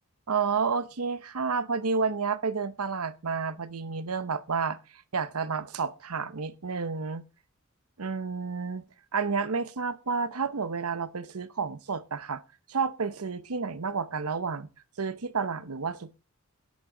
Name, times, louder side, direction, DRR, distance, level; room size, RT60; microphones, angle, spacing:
voice 1, 0.3-7.2 8.0-8.8 9.1-12.4 12.7-14.7 15.0-16.2, right 5 dB, 90° right, 0.8 m, -30 dB
10.5 x 10.5 x 3.9 m
head